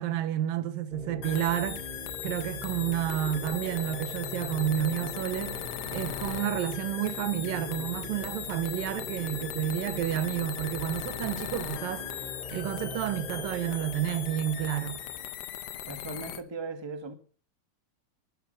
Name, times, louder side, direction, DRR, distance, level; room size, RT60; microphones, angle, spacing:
voice 1, 0.0-1.9 2.2-5.6 5.9-12.1 12.5-15.0, right 11 dB, 80° right, 2.7 m, -30 dB
sound 1, 0.9-15.3, left 1 dB, 15° right, 2.6 m, -42 dB
sound 2, 1.2-16.4, left 11 dB, 70° left, 1.4 m, -39 dB
voice 2, 15.9-17.1, right 3 dB, 35° right, 0.4 m, -38 dB
19.5 x 12.0 x 5.5 m
omnidirectional pair, 4.1 m